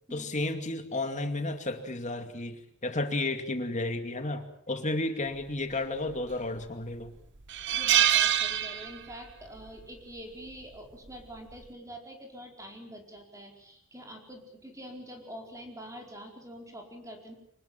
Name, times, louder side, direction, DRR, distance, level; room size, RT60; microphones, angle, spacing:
voice 1, 0.1-7.2, left 2 dB, 35° left, 7 dB, 2.4 m, -32 dB
sound 1, 6.1-6.6 7.0-7.1 7.5-9.3 9.6-9.8 11.1-11.4, right 11 dB, 60° right, 1.0 m, -25 dB
voice 2, 7.7-17.3, equal, 15° right, 2 dB, 4.6 m, -45 dB
25.0 x 20.0 x 7.5 m, 0.72 s
head